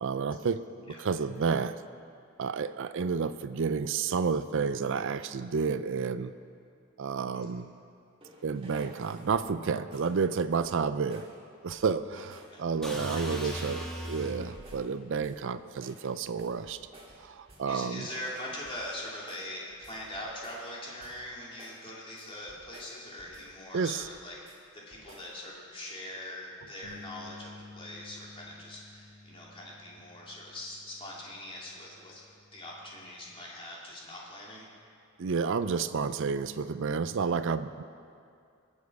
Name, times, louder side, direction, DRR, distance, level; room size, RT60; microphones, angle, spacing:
voice 1, 0.0-1.8 2.4-6.3 7.0-7.7 8.4-11.3 11.6-16.8 17.2-18.1 23.7-24.0 35.2-37.8, right 5 dB, 60° right, 13 dB, 0.5 m, -30 dB
sound 1, 8.2-9.6 9.9-10.2 10.5-10.8 11.1-11.4 11.7-12.0 12.3-12.6 12.9-13.7 14.0-14.9 15.2-15.5 15.8-17.8 18.1-20.7 21.0-21.3 21.6-21.9 22.2-23.6 23.9-24.6 24.9-25.4, right 1 dB, 25° right, 2.1 m, -55 dB
sound 2, 12.8-14.8, equal, 5° left, 1.5 m, -38 dB
voice 2, 13.1-13.8 17.7-24.4 24.9-32.2 32.5-34.7, left 1 dB, 25° left, -4 dB, 2.6 m, -42 dB
sound 3, 26.8-33.1, left 2 dB, 80° right, 1.5 m, -53 dB
20.5 x 7.4 x 4.8 m, 2.4 s
head